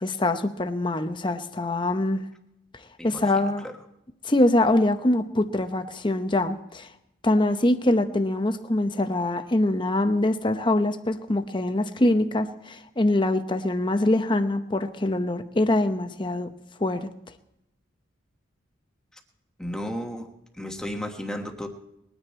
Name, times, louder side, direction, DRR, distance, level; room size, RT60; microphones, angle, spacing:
voice 1, 0.0-2.2 3.0-3.6 4.2-6.9 7.2-16.5 16.8-17.1, left 1 dB, 25° left, 8 dB, 0.8 m, -24 dB
voice 2, 3.0-3.7 19.6-20.3 20.6-21.7, equal, 5° left, 3 dB, 1.3 m, -34 dB
21.0 x 9.9 x 4.3 m, 0.84 s
head